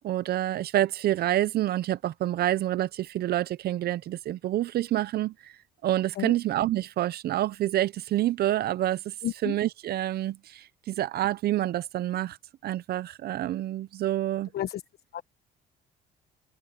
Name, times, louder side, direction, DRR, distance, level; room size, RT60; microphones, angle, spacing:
voice 1, 0.0-5.6 5.8-9.1 9.4-12.4 12.6-14.5, right 13 dB, 65° right, 0.7 m, -27 dB
voice 2, 9.2-9.6 14.5-14.8 15.1-15.2, left 12 dB, 65° left, 1.3 m, -31 dB
open air
supercardioid pair, 75°, 17 cm